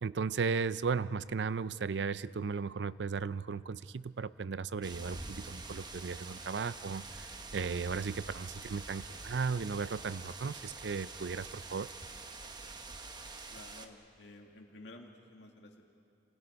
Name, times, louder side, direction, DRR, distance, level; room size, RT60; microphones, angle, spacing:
voice 1, 0.0-11.9, right 5 dB, 75° right, 17 dB, 0.5 m, -36 dB
sound 1, 4.8-13.9, right 3 dB, 25° right, 1.2 m, -46 dB
voice 2, 13.5-15.8, left 2 dB, 80° left, 1 dB, 2.2 m, -53 dB
29.5 x 27.0 x 5.2 m, 2.4 s
head